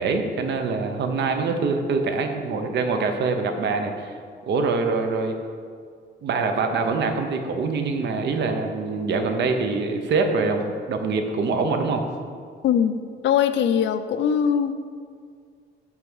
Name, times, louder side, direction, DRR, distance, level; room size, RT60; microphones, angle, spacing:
voice 1, 0.0-4.2 4.4-5.3 6.2-12.0, right 4 dB, 65° right, 5 dB, 0.7 m, -24 dB
voice 2, 12.6-14.7, left 8 dB, 70° left, 10 dB, 0.4 m, -21 dB
5.6 x 4.7 x 6.2 m, 2.1 s
wide cardioid pair, 165°, 20 cm